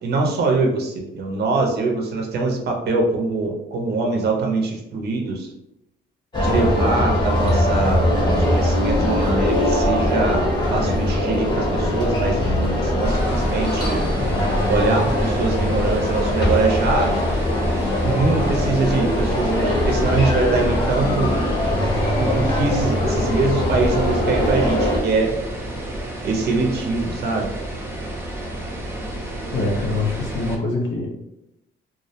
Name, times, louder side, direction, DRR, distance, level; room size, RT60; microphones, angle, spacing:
voice 1, 0.0-5.5 6.4-14.0 14.7-17.1 18.0-21.4 22.2-25.3 26.2-27.5, right 3 dB, 55° right, 2 dB, 0.6 m, -23 dB
sound 1, 6.3-25.0, left 1 dB, 25° left, 0.9 m, -21 dB
sound 2, 13.0-30.5, right 1 dB, 10° right, 0.5 m, -31 dB
voice 2, 29.5-31.1, left 3 dB, 75° left, -1 dB, 0.8 m, -24 dB
2.4 x 2.0 x 2.7 m, 0.84 s
cardioid pair, 105°, 19 cm